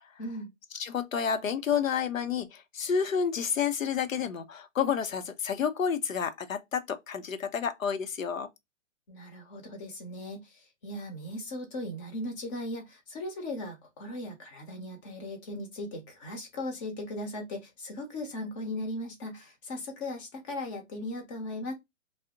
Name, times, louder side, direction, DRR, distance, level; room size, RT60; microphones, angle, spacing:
voice 1, 0.2-0.5 9.1-21.7, left 1 dB, 25° left, 0.8 m, -38 dB
voice 2, 0.7-8.5, left 7 dB, 90° left, 0.6 m, -30 dB
2.5 x 2.0 x 3.6 m
hypercardioid pair, 135°, 39 cm